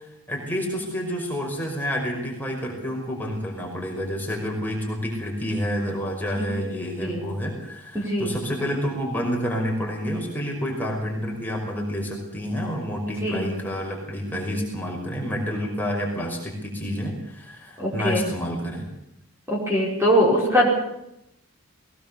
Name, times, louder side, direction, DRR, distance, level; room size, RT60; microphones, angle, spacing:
voice 1, 0.0-18.8, equal, 10° left, -1 dB, 5.5 m, -29 dB
voice 2, 7.9-8.3 13.2-13.5 17.8-18.3 19.5-20.7, equal, 10° right, -3 dB, 4.9 m, -22 dB
20.5 x 19.5 x 7.1 m, 0.83 s
head